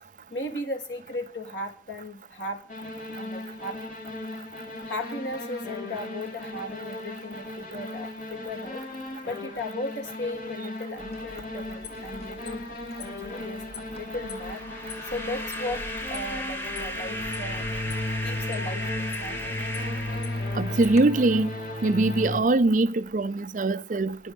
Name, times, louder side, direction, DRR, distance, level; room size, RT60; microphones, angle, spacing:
voice 1, 0.3-2.6 3.2-3.8 4.9-8.8 9.3-12.6 13.0-13.6 14.0-14.6 15.0-17.7 18.2-19.6, left 1 dB, 80° left, 2.7 m, -36 dB
sound 1, 2.7-22.4, left 2 dB, 50° left, 3.6 m, -35 dB
sound 2, 11.0-21.0, left 3 dB, 35° left, 1.5 m, -45 dB
sound 3, 14.0-21.1, equal, 15° left, 1.5 m, -36 dB
voice 2, 20.5-21.5 21.8-24.2, right 2 dB, 45° right, 0.5 m, -22 dB
10.0 x 6.2 x 8.0 m
head